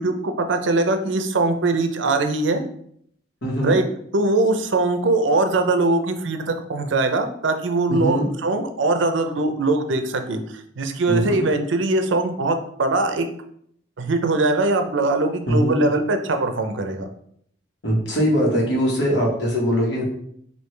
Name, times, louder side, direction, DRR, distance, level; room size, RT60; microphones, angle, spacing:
voice 1, 0.0-2.6 3.6-3.8 4.1-10.4 10.8-13.3 14.0-17.1, right 2 dB, 75° right, 7 dB, 0.5 m, -21 dB
voice 2, 3.4-3.8 7.9-8.3 11.1-11.4 15.5-15.8 17.8-20.0, equal, 65° left, -2 dB, 1.4 m, -21 dB
4.6 x 2.7 x 3.3 m, 0.67 s
head